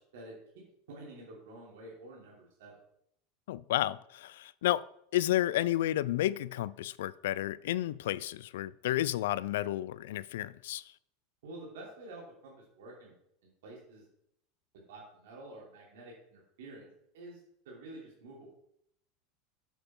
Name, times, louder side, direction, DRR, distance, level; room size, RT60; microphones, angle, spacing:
voice 1, 0.0-2.8 11.4-13.1 13.4-14.0 14.9-16.9 17.1-17.4 17.6-18.5, right 2 dB, 90° right, 3.1 m, -49 dB
voice 2, 3.5-4.8 5.1-10.9, left 14 dB, 85° left, 0.3 m, -31 dB
7.8 x 6.6 x 4.4 m
supercardioid pair, 170°, 0 cm